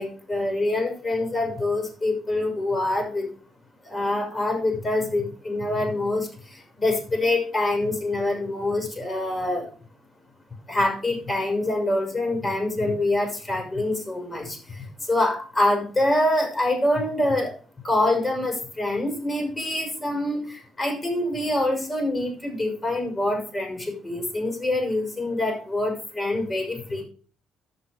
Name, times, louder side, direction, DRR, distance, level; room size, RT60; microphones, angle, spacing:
voice 1, 0.0-3.3 3.8-9.7 10.7-17.5 17.8-27.0, left 1 dB, 30° left, 3 dB, 6.0 m, -25 dB
11.0 x 8.1 x 5.1 m, 0.41 s
cardioid pair, 90°, 0 cm